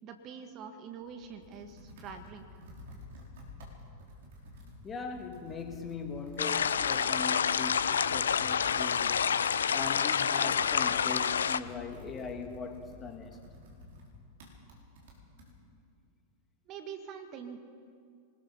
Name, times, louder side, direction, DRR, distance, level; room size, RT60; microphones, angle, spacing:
voice 1, 0.0-2.4 16.7-17.6, right 6 dB, 35° right, 1.8 m, -44 dB
Computer keyboard, 0.9-15.5, left 1 dB, 60° right, 4.9 m, -51 dB
voice 2, 4.8-13.4, left 4 dB, 20° left, 2.2 m, -40 dB
sound 1, 6.4-11.6, left 7 dB, 70° left, 0.6 m, -28 dB
24.0 x 20.5 x 5.8 m
figure-of-eight pair, 90°, 0 cm